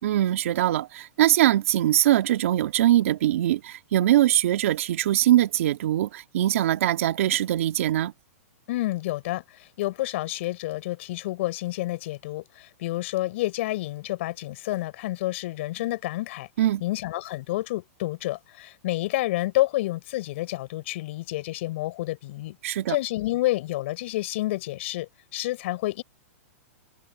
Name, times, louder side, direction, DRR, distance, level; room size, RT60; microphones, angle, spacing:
voice 1, 0.0-8.1 16.6-16.8 22.6-23.0, right 13 dB, 65° right, 2.0 m, -22 dB
voice 2, 8.7-16.5 16.8-22.6 22.9-26.0, left 17 dB, 55° left, 6.7 m, -29 dB
hypercardioid pair, 135°, 8 cm